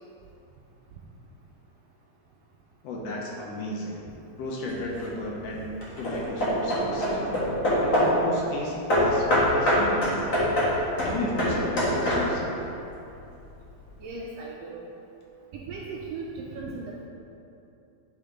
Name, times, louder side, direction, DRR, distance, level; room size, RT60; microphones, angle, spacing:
voice 1, 2.8-4.0 4.4-10.3 10.7-12.7, left 1 dB, 70° left, -3 dB, 1.8 m, -34 dB
Hammer / Wood, 4.7-5.2 5.8-8.3 8.9-12.6, equal, 40° left, 1.2 m, -24 dB
voice 2, 14.0-14.9 15.7-17.1, right 3 dB, 80° right, -3 dB, 1.5 m, -37 dB
9.9 x 3.4 x 3.7 m, 2.7 s
omnidirectional pair, 3.3 m